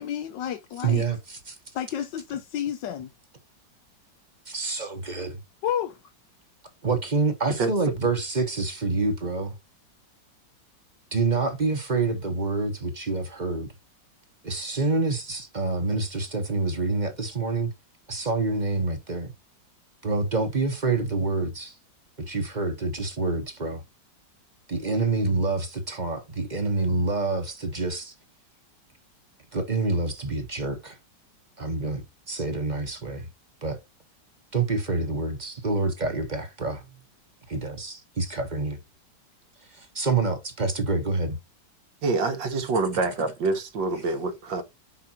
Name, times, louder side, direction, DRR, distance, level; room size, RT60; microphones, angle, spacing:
voice 1, 0.0-1.1 1.7-3.1 5.6-6.0, left 9 dB, 75° left, 1.4 m, -30 dB
voice 2, 0.8-1.6 4.5-5.4 6.8-9.6 11.1-13.7 14.4-17.7 18.1-19.3 20.0-21.7 22.2-23.8 24.7-28.1 29.5-31.0 31.6-33.3 33.6-33.8 34.5-36.9 37.5-38.8 39.7-41.4, right 3 dB, 30° right, 1.0 m, -27 dB
voice 3, 42.0-44.6, right 3 dB, 80° right, 2.0 m, -26 dB
5.6 x 5.1 x 4.3 m
omnidirectional pair, 2.0 m